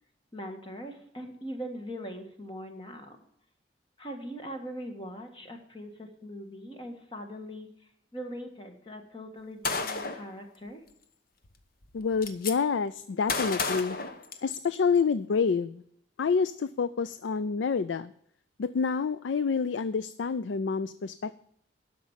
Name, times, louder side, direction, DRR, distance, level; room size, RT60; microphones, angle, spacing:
voice 1, 0.3-3.2 4.0-10.8, equal, 25° left, 4 dB, 1.6 m, -41 dB
Gunshot gunfire, 9.6-10.3 11.4-11.5 11.8-12.5 13.3-14.8, left 4 dB, 50° left, 1.0 m, -31 dB
voice 2, 11.9-14.0 14.4-15.8 16.2-18.1 18.6-21.4, left 5 dB, 80° left, 15 dB, 0.4 m, -28 dB
11.5 x 6.0 x 7.1 m, 0.69 s
head